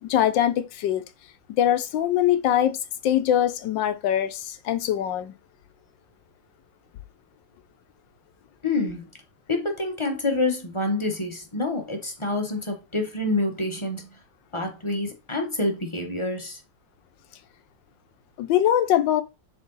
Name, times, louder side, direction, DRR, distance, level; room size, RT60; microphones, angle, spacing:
voice 1, 0.0-1.0 1.6-2.8 3.0-5.3 18.4-19.2, left 11 dB, 75° left, 1.4 m, -22 dB
voice 2, 8.6-9.1 9.5-14.1 14.5-16.6, left 2 dB, 20° left, 0.9 m, -27 dB
7.4 x 3.8 x 4.0 m
omnidirectional pair, 2.1 m